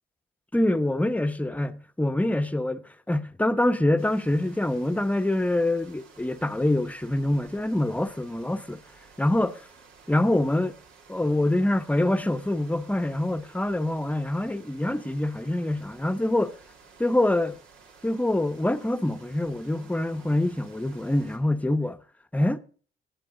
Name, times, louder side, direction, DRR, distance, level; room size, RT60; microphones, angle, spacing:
voice 1, 0.5-8.8 9.2-9.6 10.1-10.7 11.1-16.5 17.0-17.6 18.0-22.0 22.3-22.6, left 1 dB, 5° left, 0.8 m, -25 dB
sound 1, 4.0-21.4, right 5 dB, 85° right, 2.6 m, -54 dB
18.5 x 7.5 x 3.8 m
cardioid pair, 90°, 20 cm